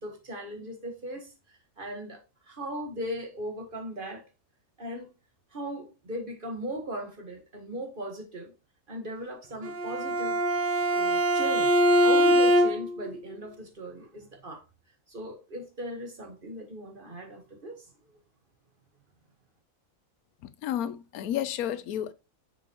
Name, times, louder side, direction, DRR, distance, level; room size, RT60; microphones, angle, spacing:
voice 1, 0.0-4.2 4.8-5.1 5.5-8.5 8.9-10.4 10.9-14.6 15.1-17.9, equal, 40° right, 1.6 m, -38 dB
Bowed string instrument, 9.6-13.0, equal, 80° right, 0.4 m, -23 dB
voice 2, 20.6-22.1, left 10 dB, 90° left, 1.1 m, -31 dB
6.6 x 5.9 x 2.9 m
omnidirectional pair, 1.5 m